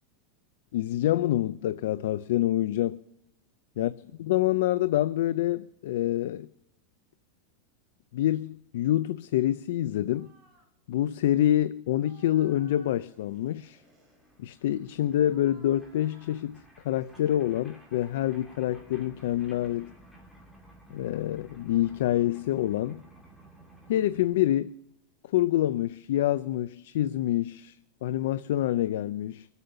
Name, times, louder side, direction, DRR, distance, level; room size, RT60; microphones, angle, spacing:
voice 1, 0.7-3.0 3.8-6.5 8.1-10.3 10.9-13.8 14.4-19.9 20.9-23.0 23.9-24.8 25.2-27.8 28.0-29.5, left 13 dB, 70° left, 0.5 m, -27 dB
sound 1, 10.1-10.7 11.0-11.3 11.9-14.7 15.1-16.5 17.0-18.1 19.2-21.0, right 3 dB, 15° right, 4.8 m, -61 dB
sound 2, 13.2-13.3 13.5-24.3, right 1 dB, 5° left, 2.7 m, -54 dB
24.0 x 8.2 x 6.6 m
supercardioid pair, 160°, 0 cm